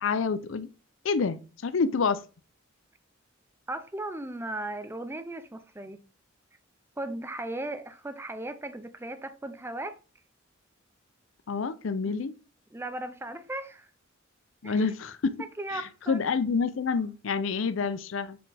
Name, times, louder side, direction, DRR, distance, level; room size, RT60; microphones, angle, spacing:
voice 1, 0.0-0.7 1.0-2.2 11.5-12.3 14.6-15.4 15.7-15.8 16.1-18.4, left 5 dB, 75° left, 0.5 m, -28 dB
voice 2, 3.7-6.0 7.0-10.0 12.0-12.2 12.7-13.9 14.6-14.9 15.6-16.2, right 1 dB, 10° right, 0.5 m, -37 dB
6.6 x 4.3 x 3.4 m
head